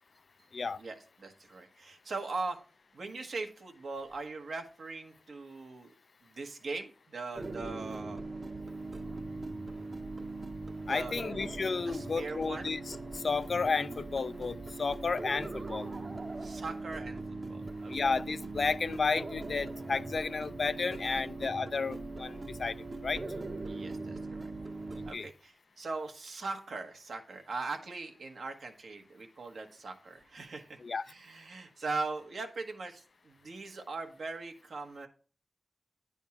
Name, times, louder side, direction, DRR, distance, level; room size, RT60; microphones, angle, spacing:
voice 1, 0.8-2.6 2.9-5.9 6.3-8.2 10.8-11.2 11.9-12.7 16.4-17.2 17.5-17.9 21.0-21.2 23.7-24.4 25.0-30.8 31.1-35.1, right 3 dB, 80° right, 1.1 m, -40 dB
sound 1, 7.3-25.1, right 2 dB, 45° right, 0.8 m, -40 dB
voice 2, 10.9-15.9 17.9-22.7 23.0-23.2 25.1-25.3 30.8-31.0, left 4 dB, 65° left, 0.3 m, -32 dB
9.6 x 3.6 x 5.7 m
wide cardioid pair, 70°, 0 cm